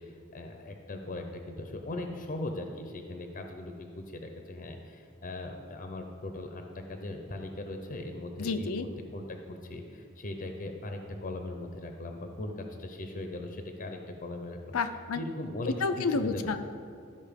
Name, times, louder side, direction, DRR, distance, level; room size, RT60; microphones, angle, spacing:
voice 1, 0.0-12.5 12.8-14.7 15.2-16.6, left 2 dB, 40° left, 5 dB, 0.7 m, -39 dB
voice 2, 8.4-8.9 14.7-15.2 15.6-16.6, left 4 dB, 85° left, 9 dB, 0.6 m, -30 dB
13.0 x 5.3 x 5.2 m, 2.5 s
head